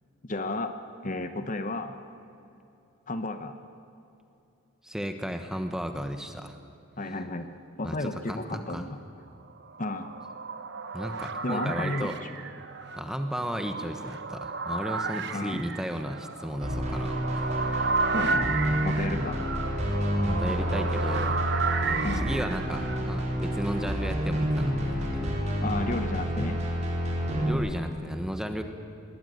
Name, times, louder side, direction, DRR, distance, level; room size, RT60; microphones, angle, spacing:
voice 1, 0.2-0.7 1.0-1.9 3.1-3.5 7.0-7.5 7.8-9.0 9.8-10.1 11.4-12.4 15.3-15.6 18.1-18.5 18.8-19.4 22.0-22.4 25.6-26.6, left 2 dB, 35° left, 8 dB, 1.0 m, -32 dB
voice 2, 4.8-6.6 7.8-8.9 10.9-12.2 13.0-17.8 20.2-21.4 22.2-25.3 27.4-28.6, equal, 5° right, 6 dB, 1.2 m, -34 dB
sound 1, 9.6-23.0, right 4 dB, 50° right, 1.1 m, -33 dB
sound 2, 16.6-27.5, equal, 30° right, 3.9 m, -29 dB
21.0 x 19.0 x 9.4 m, 2.7 s
head